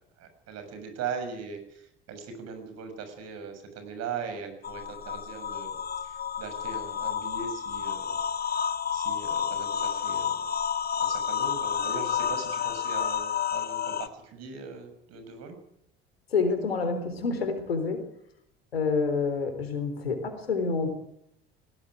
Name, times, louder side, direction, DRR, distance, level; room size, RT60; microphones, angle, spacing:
voice 1, 0.2-5.8 6.0-8.2 8.9-10.5 11.0-15.6, right 6 dB, 60° right, 8 dB, 6.7 m, -39 dB
sound 1, 4.6-14.1, left 8 dB, 30° left, 1.6 m, -30 dB
voice 2, 16.3-18.0 18.7-20.9, left 4 dB, 90° left, 8 dB, 3.8 m, -28 dB
20.5 x 18.0 x 9.3 m, 0.74 s
hypercardioid pair, 60°, 29 cm